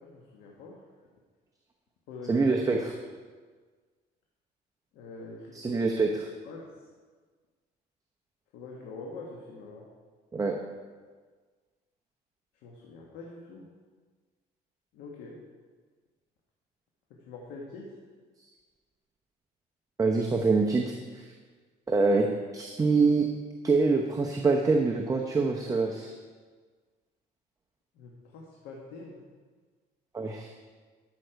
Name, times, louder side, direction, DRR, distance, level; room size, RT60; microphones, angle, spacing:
voice 1, 0.0-0.8 2.1-2.8 4.9-5.8 6.4-6.7 8.5-9.8 12.6-13.7 14.9-15.4 17.3-17.9 28.0-29.2, left 3 dB, 90° left, -2 dB, 1.5 m, -44 dB
voice 2, 2.3-2.9 5.5-6.3 10.3-10.6 20.0-21.2 21.9-22.3 22.5-23.3 23.6-26.1 30.1-30.5, right 4 dB, 20° right, 1 dB, 0.8 m, -25 dB
13.0 x 6.4 x 4.6 m, 1.5 s
cardioid pair, 110°, 17 cm